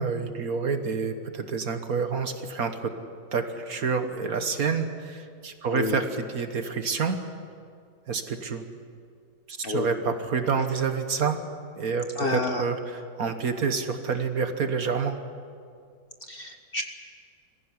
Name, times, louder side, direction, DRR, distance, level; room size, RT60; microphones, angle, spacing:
voice 1, 0.0-2.9 3.3-7.2 8.1-8.7 9.5-11.4 11.8-15.2, right 5 dB, 55° right, 8 dB, 1.6 m, -28 dB
voice 2, 5.7-6.0 9.6-9.9 12.2-12.7 16.3-16.8, left 3 dB, 35° left, 5 dB, 1.1 m, -29 dB
22.0 x 15.5 x 9.7 m, 2.2 s
omnidirectional pair, 2.0 m